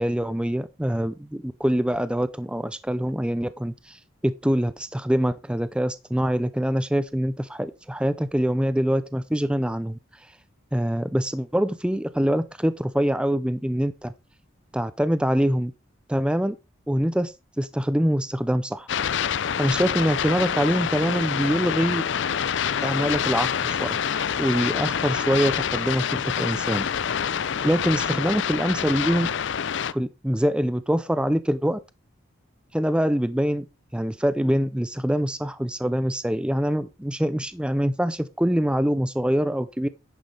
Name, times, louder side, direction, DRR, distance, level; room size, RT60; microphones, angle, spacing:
voice 1, 0.0-10.3 10.7-14.1 14.7-15.7 16.1-16.6 16.9-18.9 19.6-22.0 22.8-24.0 24.4-26.8 27.6-29.3 29.9-31.8 32.7-33.7 33.9-39.9, equal, 5° right, 0.4 m, -24 dB
sound 1, 18.9-29.9, left 8 dB, 60° left, 0.5 m, -26 dB
10.5 x 9.1 x 3.3 m
head